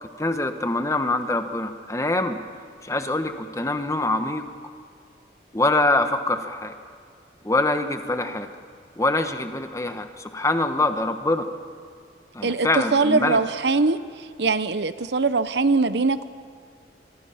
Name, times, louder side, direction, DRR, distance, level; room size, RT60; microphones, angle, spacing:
voice 1, 0.0-2.4 2.8-4.5 5.5-6.7 7.4-8.5 9.0-11.5 12.3-13.4, left 2 dB, 15° left, 8 dB, 1.1 m, -24 dB
voice 2, 12.4-14.0 14.4-16.3, right 3 dB, 70° right, 13 dB, 0.8 m, -22 dB
26.5 x 23.0 x 5.7 m, 2.1 s
head